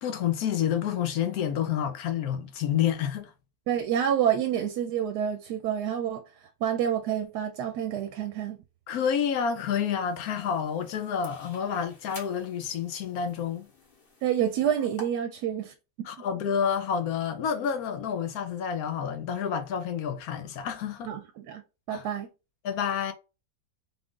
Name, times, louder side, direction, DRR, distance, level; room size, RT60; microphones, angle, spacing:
voice 1, 0.0-3.3 8.9-13.7 16.0-21.1 21.9-22.1 22.6-23.1, left 8 dB, 70° left, 1.0 m, -29 dB
voice 2, 3.7-6.2 6.6-8.6 14.2-15.7 21.1-21.6 21.9-22.3, right 9 dB, 80° right, 1.1 m, -28 dB
sound 1, 9.2-15.0, left 2 dB, 40° left, 1.1 m, -51 dB
3.8 x 2.3 x 3.7 m
omnidirectional pair, 1.8 m